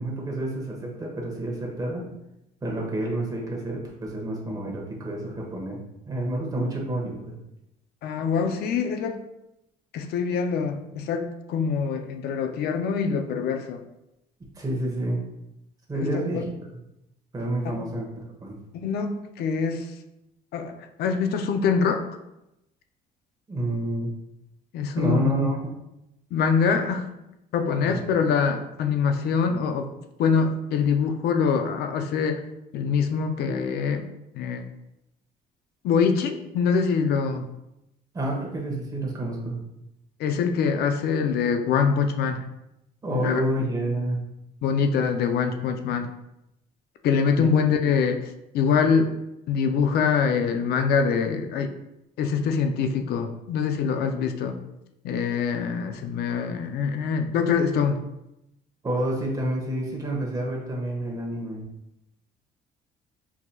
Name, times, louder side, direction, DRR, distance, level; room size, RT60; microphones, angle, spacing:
voice 1, 0.0-2.1 2.6-5.8 6.1-7.3 14.6-15.2 15.9-16.4 17.3-18.6 23.5-24.1 24.9-25.7 38.1-39.6 43.0-44.2 47.4-47.5 58.8-61.6, right 1 dB, 20° right, -1 dB, 1.0 m, -29 dB
voice 2, 8.0-9.2 9.9-13.8 15.9-16.4 17.6-17.8 18.7-19.9 20.5-22.0 24.7-25.3 26.3-27.1 27.5-29.9 30.2-32.4 32.7-34.1 34.3-34.7 35.8-37.4 40.2-42.4 43.1-43.4 44.6-46.1 47.0-48.2 48.5-49.1 49.5-51.7 52.2-54.6 55.0-58.0, left 6 dB, 70° left, 6 dB, 0.5 m, -24 dB
4.6 x 2.7 x 2.2 m, 0.87 s
cardioid pair, 110°, 17 cm